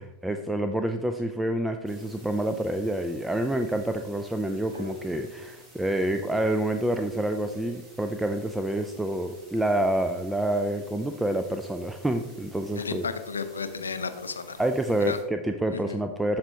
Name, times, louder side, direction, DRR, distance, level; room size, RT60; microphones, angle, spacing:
voice 1, 0.0-13.1 14.6-16.4, right 1 dB, 5° right, 6 dB, 0.4 m, -28 dB
sound 1, 1.9-15.2, right 1 dB, 20° right, 2.3 m, -54 dB
sound 2, 4.7-8.8, left 4 dB, 75° right, 1.2 m, -49 dB
voice 2, 12.8-14.6 15.1-15.2 15.7-16.0, left 5 dB, 75° left, 9 dB, 0.6 m, -33 dB
12.5 x 4.3 x 2.8 m, 1.1 s
figure-of-eight pair, 90°, 0 cm